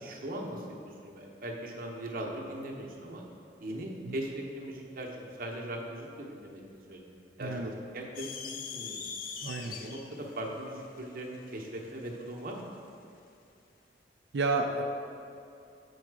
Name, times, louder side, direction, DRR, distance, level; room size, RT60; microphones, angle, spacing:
voice 1, 0.0-3.2 3.6-9.1 9.6-12.7, right 1 dB, 50° right, 0 dB, 0.8 m, -40 dB
voice 2, 7.4-7.7 9.4-9.7 14.3-14.8, right 3 dB, 70° right, 3 dB, 0.5 m, -31 dB
sound 1, 8.1-12.7, left 6 dB, 50° left, 0.5 m, -42 dB
7.0 x 4.7 x 4.7 m, 2.5 s
head